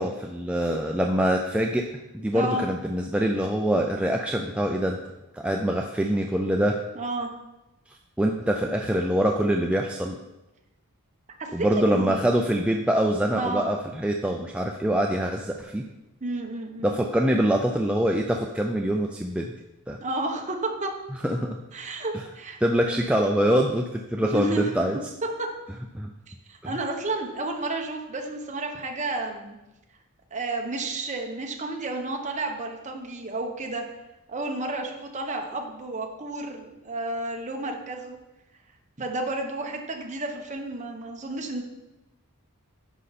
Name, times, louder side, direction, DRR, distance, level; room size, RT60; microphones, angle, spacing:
voice 1, 0.0-1.9 2.1-5.0 5.3-6.8 8.2-10.1 11.5-15.8 16.8-19.5 19.9-20.0 21.2-21.5 22.1-22.2 22.6-25.0 25.9-26.1 26.6-26.7, right 1 dB, 5° right, 1 dB, 0.4 m, -24 dB
voice 2, 2.3-2.6 6.9-7.3 11.4-12.2 13.3-13.7 16.2-17.1 20.0-20.9 21.7-22.6 24.3-24.7 25.4-25.5 26.5-29.6 30.3-33.8 34.3-38.2 39.0-41.6, right 2 dB, 35° right, 2 dB, 1.1 m, -31 dB
10.0 x 5.6 x 4.2 m, 0.98 s
head